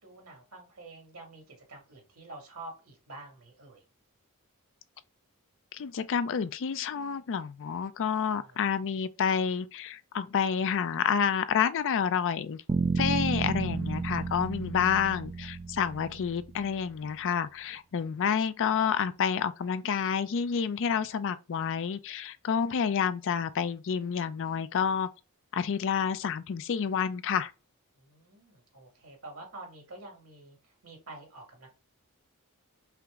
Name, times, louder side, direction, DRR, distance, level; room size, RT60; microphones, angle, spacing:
voice 1, 0.0-3.8 8.2-8.7 15.1-15.2 27.9-31.7, right 2 dB, 70° right, 2.0 m, -48 dB
voice 2, 5.7-12.6 13.0-25.1 25.5-27.5, left 7 dB, 60° left, 0.4 m, -29 dB
sound 1, 12.7-16.8, right 4 dB, 25° right, 0.3 m, -32 dB
5.7 x 2.0 x 3.5 m
head